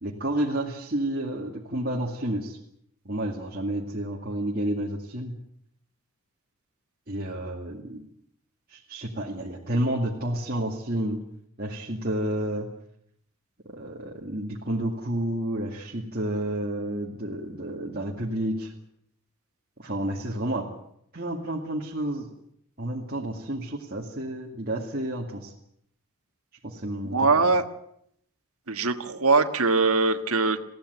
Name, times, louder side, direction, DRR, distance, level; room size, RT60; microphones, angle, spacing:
voice 1, 0.0-2.6 3.1-5.4 7.1-8.1 8.7-11.2 11.6-12.7 13.7-18.7 19.8-20.7 21.1-22.3 22.8-25.5 26.6-27.5, right 1 dB, 40° right, -2 dB, 2.2 m, -30 dB
voice 2, 27.1-27.6 28.7-30.6, right 3 dB, 75° right, 6 dB, 1.5 m, -22 dB
21.0 x 16.0 x 9.4 m, 0.72 s
head